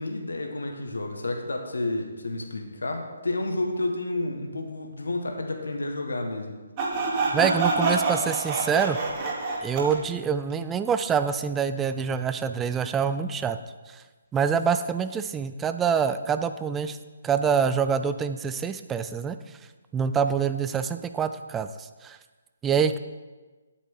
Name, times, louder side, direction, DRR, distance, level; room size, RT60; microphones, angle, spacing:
voice 1, 0.0-6.5, left 2 dB, 65° left, 3 dB, 1.6 m, -30 dB
Sawing, 6.8-10.0, right 3 dB, 30° right, 2.1 m, -26 dB
voice 2, 7.3-9.0 9.6-13.6 13.9-14.0 14.3-17.0 17.2-19.4 19.9-22.2 22.6-23.0, right 6 dB, 10° right, 10 dB, 0.4 m, -26 dB
9.9 x 8.6 x 4.9 m, 1.3 s
figure-of-eight pair, 135°, 0 cm